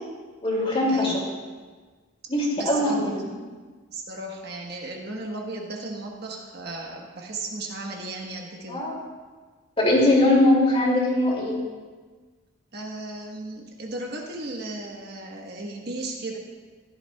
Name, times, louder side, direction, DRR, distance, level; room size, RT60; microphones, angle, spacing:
voice 1, 0.4-1.1 2.3-3.2 8.7-9.0 9.8-11.6, left 1 dB, 30° left, -3 dB, 2.6 m, -21 dB
voice 2, 2.6-3.3 3.9-8.8 12.7-16.4, right 2 dB, 50° right, 0 dB, 1.3 m, -35 dB
15.5 x 11.5 x 2.3 m, 1.4 s
head